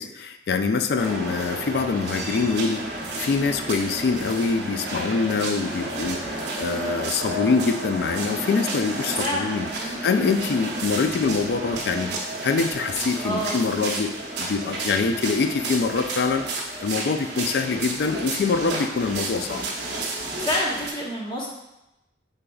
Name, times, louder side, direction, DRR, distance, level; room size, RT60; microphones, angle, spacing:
voice 1, 0.0-2.9 3.2-9.7 10.0-14.1 14.4-19.7, left 4 dB, 60° left, 7 dB, 0.3 m, -24 dB
sound 1, 1.0-20.9, right 2 dB, 65° right, 0.8 m, -31 dB
voice 2, 9.2-10.0 13.2-13.6 20.4-21.5, left 1 dB, 25° left, -3 dB, 0.7 m, -28 dB
5.0 x 3.9 x 2.3 m, 0.94 s
head